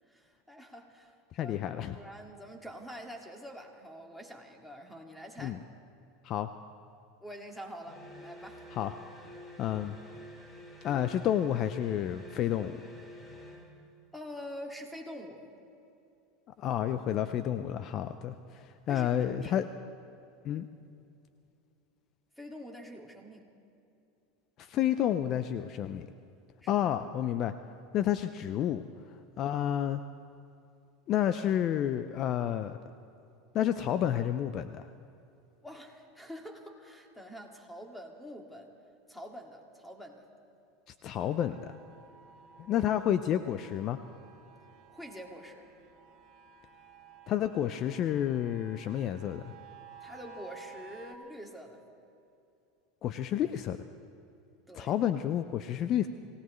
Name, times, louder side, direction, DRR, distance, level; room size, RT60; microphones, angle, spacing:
voice 1, 0.1-5.6 7.2-8.6 14.1-15.4 18.9-19.6 22.4-23.5 26.6-26.7 35.6-38.7 39.1-40.3 44.9-45.7 50.0-51.8 54.7-54.9, equal, 5° left, 2 dB, 2.2 m, -46 dB
voice 2, 1.3-1.9 5.4-5.6 6.2-6.5 8.7-8.9 9.6-10.0 10.8-12.8 16.6-19.7 20.4-20.7 24.6-26.1 26.7-27.5 27.9-28.8 29.4-30.0 31.1-32.8 33.5-34.8 41.0-41.8 42.7-44.0 47.3-49.5 53.0-53.8 54.7-56.1, left 10 dB, 45° left, 11 dB, 0.5 m, -30 dB
sound 1, 7.8-13.8, equal, 20° left, 3.0 m, -49 dB
sound 2, 41.2-51.1, right 5 dB, 55° right, 1.9 m, -54 dB
26.0 x 17.0 x 3.2 m, 2.6 s
supercardioid pair, 110°, 0 cm